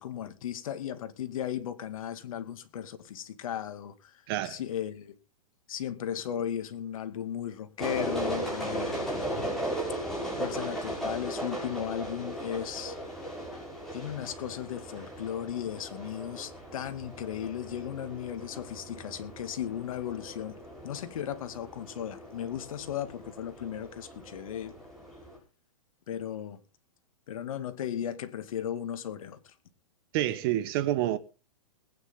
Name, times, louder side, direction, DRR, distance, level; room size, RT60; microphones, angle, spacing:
voice 1, 0.0-4.1 4.4-5.1 5.7-9.3 10.4-13.0 13.9-20.5 20.8-24.8 26.1-26.6 27.3-29.5, left 10 dB, 65° left, 2.2 m, -36 dB
voice 2, 4.3-4.6 30.1-31.2, right 13 dB, 40° right, 1.3 m, -28 dB
sound 1, 7.8-25.4, right 1 dB, ahead, 6.2 m, -37 dB
21.0 x 9.6 x 3.7 m
hypercardioid pair, 155°, 19 cm